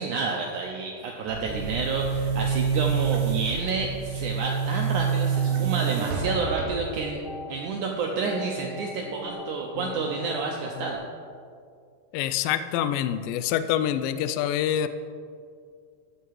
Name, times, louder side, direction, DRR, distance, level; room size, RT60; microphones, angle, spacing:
voice 1, 0.0-7.2 7.5-11.0, right 4 dB, 85° right, 0 dB, 1.7 m, -29 dB
Boom, 1.3-7.1, right 7 dB, 70° right, 3.1 m, -27 dB
sound 1, 5.3-10.9, left 1 dB, 45° left, 1.8 m, -39 dB
voice 2, 12.1-14.9, left 10 dB, 85° left, 11 dB, 2.0 m, -26 dB
14.0 x 6.6 x 4.7 m, 2.2 s
omnidirectional pair, 4.6 m